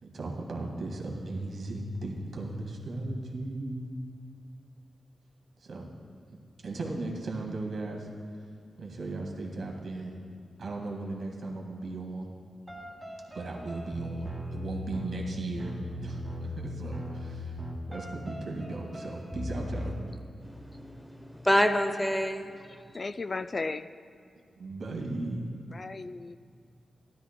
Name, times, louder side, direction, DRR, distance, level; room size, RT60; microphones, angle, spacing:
voice 1, 0.0-3.9 5.6-5.9 6.6-8.1 8.8-10.2 10.6-12.3 13.3-17.6 17.9-20.0 24.6-25.5, right 2 dB, 70° right, 0 dB, 1.9 m, -36 dB
sound 1, 12.7-19.9, left 1 dB, 10° right, 2.7 m, -38 dB
voice 2, 20.4-22.5, equal, 5° left, 7 dB, 0.8 m, -27 dB
voice 3, 22.7-23.9 25.7-26.4, left 3 dB, 50° left, 11 dB, 0.3 m, -35 dB
12.5 x 12.5 x 2.2 m, 2.4 s
cardioid pair, 50°, 0 cm